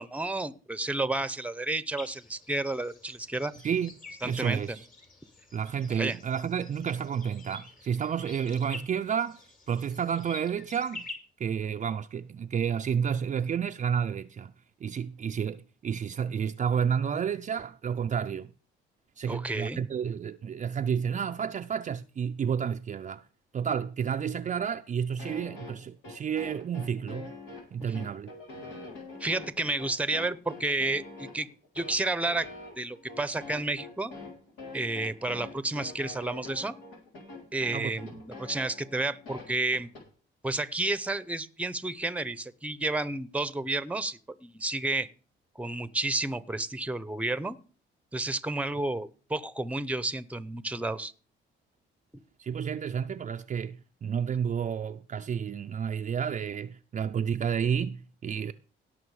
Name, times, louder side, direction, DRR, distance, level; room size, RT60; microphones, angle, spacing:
voice 1, 0.0-3.5 4.2-4.8 5.9-6.2 19.3-19.8 27.9-28.0 29.2-31.5 31.7-32.5 32.8-34.1 34.7-36.7 37.5-39.9 40.4-45.1 45.6-47.6 48.1-51.1, right 2 dB, 5° right, 0.7 m, -31 dB
sound 1, 2.0-11.1, left 3 dB, 45° left, 3.0 m, -48 dB
voice 2, 4.2-4.8 5.5-9.4 9.7-11.1 11.4-14.5 14.8-18.5 19.2-23.2 23.5-27.3 27.7-28.3 37.7-37.9 52.4-58.5, right 7 dB, 40° right, 0.4 m, -30 dB
sound 2, 25.2-40.0, left 3 dB, 90° left, 3.5 m, -44 dB
17.5 x 6.1 x 4.8 m
cardioid pair, 90°, 20 cm